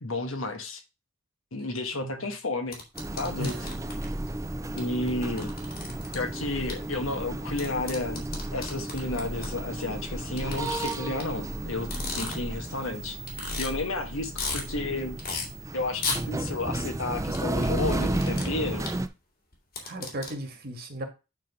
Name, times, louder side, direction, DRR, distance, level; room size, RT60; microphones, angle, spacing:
voice 1, 0.0-0.8 1.5-2.8 3.2-3.5 4.8-5.5 6.1-8.2 8.5-13.2 13.6-15.2 15.7-18.9, left 2 dB, 80° left, 1.4 m, -32 dB
sound 1, 2.7-4.1 4.8-4.9 5.1-6.1 6.7-6.8 7.6-9.5 10.4-11.2 11.8-12.6 12.9-13.0 13.3-13.7 14.1-14.6 15.2-15.4 16.0-16.2 17.3-18.4 18.8-18.9 19.5-20.3, left 4 dB, 45° left, 2.7 m, -34 dB
sound 2, 3.0-19.1, right 1 dB, 15° right, 0.5 m, -33 dB
voice 2, 3.4-3.7 4.4-4.6 19.8-21.0, right 1 dB, 50° right, 1.8 m, -36 dB
8.9 x 3.7 x 5.5 m
head